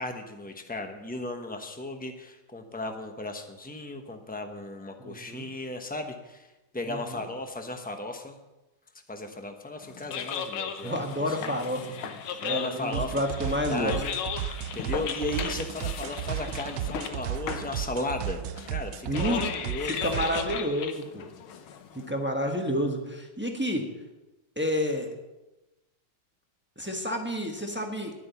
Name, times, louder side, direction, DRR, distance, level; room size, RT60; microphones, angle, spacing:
voice 1, 0.0-6.5 6.7-8.4 9.1-11.0 11.3-11.6 12.5-13.2 13.7-14.2 14.7-18.4 18.7-20.3, left 2 dB, 10° left, 5 dB, 0.4 m, -35 dB
voice 2, 5.0-5.5 6.9-7.2 10.8-12.1 12.4-14.0 19.1-19.6 19.8-21.3 21.9-23.8 24.6-25.1 26.8-28.1, equal, 5° right, 2 dB, 1.0 m, -30 dB
sound 1, 9.8-22.1, left 7 dB, 85° left, 1.8 m, -37 dB
sound 2, 12.9-20.6, right 12 dB, 75° right, 1.0 m, -34 dB
11.5 x 9.7 x 7.0 m, 1.0 s
omnidirectional pair, 2.2 m